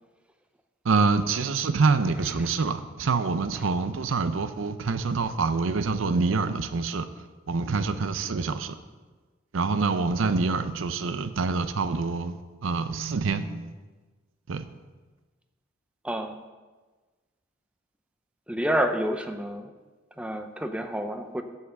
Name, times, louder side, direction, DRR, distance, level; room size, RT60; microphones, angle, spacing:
voice 1, 0.8-7.1 7.5-8.8 9.5-13.7 14.5-14.6, right 4 dB, 85° right, 12 dB, 0.6 m, -26 dB
voice 2, 16.0-16.4 18.5-19.7 20.2-21.4, equal, 5° right, 7 dB, 0.5 m, -29 dB
8.0 x 5.6 x 6.8 m, 1.3 s
head